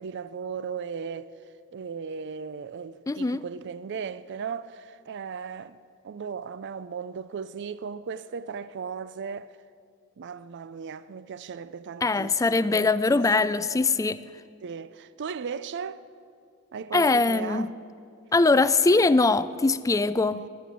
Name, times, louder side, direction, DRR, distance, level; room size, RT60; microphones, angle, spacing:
voice 1, 0.0-1.3 1.7-5.8 6.0-9.6 10.2-13.5 14.6-16.0 16.7-17.7 20.3-20.5, right 6 dB, 55° right, 0.4 m, -37 dB
voice 2, 3.1-3.4 12.0-14.2 16.9-17.7 18.3-20.5, left 3 dB, 15° left, 0.3 m, -22 dB
15.0 x 10.0 x 8.4 m
head